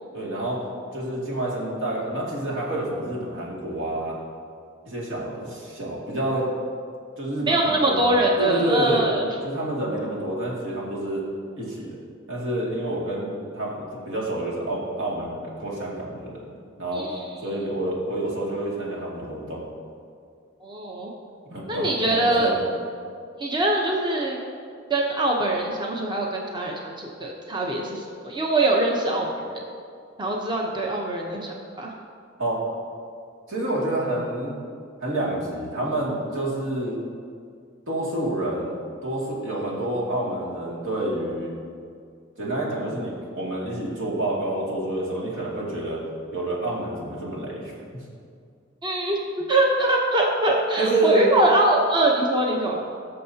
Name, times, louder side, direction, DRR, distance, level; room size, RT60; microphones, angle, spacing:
voice 1, 0.1-0.6 0.9-4.2 4.8-6.5 7.2-8.1 8.4-9.1 9.4-11.2 11.6-12.0 12.3-16.4 16.8-17.1 17.4-19.6 21.5-22.6 32.4-32.6 33.5-34.5 35.0-37.0 37.9-38.7 39.0-41.5 42.4-46.0 46.3-47.7 50.8-51.2, right 1 dB, 80° right, -5 dB, 2.4 m, -28 dB
voice 2, 7.5-9.3 16.9-17.2 20.6-21.1 21.7-22.5 23.4-24.4 24.9-29.4 30.2-31.9 48.8-52.8, right 1 dB, 25° right, -1 dB, 0.8 m, -23 dB
17.5 x 6.6 x 2.8 m, 2.3 s
head